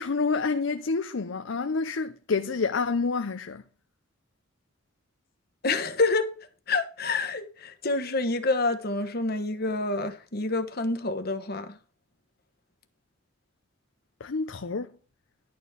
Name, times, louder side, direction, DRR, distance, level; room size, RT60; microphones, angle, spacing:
voice 1, 0.0-3.6 14.2-14.9, left 4 dB, 75° left, 0.6 m, -28 dB
voice 2, 5.6-6.3 6.7-11.8, left 3 dB, 50° left, 1.2 m, -27 dB
11.5 x 4.4 x 8.0 m
head